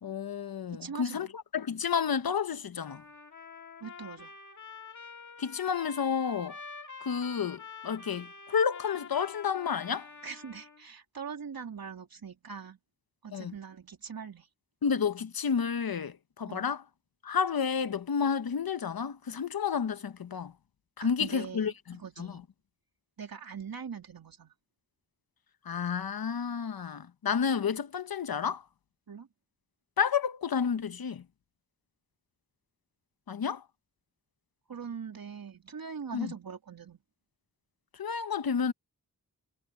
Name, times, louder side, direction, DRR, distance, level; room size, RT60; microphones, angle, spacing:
voice 1, 0.0-3.0 5.4-6.6 7.0-10.1 13.3-13.5 14.8-16.8 17.2-20.5 21.0-22.4 25.6-28.6 30.0-31.2 33.3-33.6 36.1-36.3 38.0-38.7, left 6 dB, 80° left, 1.0 m, -31 dB
voice 2, 0.7-1.3 3.8-4.3 10.2-12.8 13.2-14.5 16.5-16.7 21.0-22.5 23.2-24.5 29.1-29.3 34.7-37.0, right 6 dB, 80° right, 3.4 m, -42 dB
Trumpet, 2.8-10.8, left 5 dB, 55° left, 2.0 m, -47 dB
wide cardioid pair, 70°, 35 cm